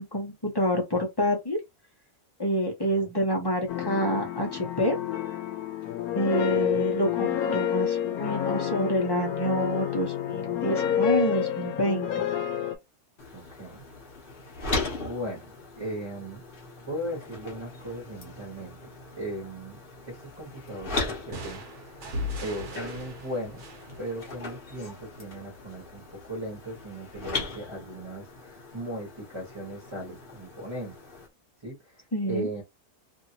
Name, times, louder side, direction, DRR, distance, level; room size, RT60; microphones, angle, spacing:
voice 1, 0.0-1.6 2.4-5.0 6.1-12.1 32.1-32.5, equal, 20° left, 0.7 m, -27 dB
sound 1, 3.7-12.7, left 9 dB, 90° left, 1.1 m, -29 dB
sound 2, 13.2-31.3, left 3 dB, 40° left, 1.0 m, -39 dB
voice 2, 13.3-13.8 15.0-15.5 15.8-16.4 16.9-22.0 22.4-23.6 24.0-30.9 31.6-32.6, right 1 dB, 20° right, 1.2 m, -37 dB
sound 3, 21.3-25.0, left 1 dB, 55° right, 1.0 m, -38 dB
2.9 x 2.6 x 2.8 m
omnidirectional pair, 1.6 m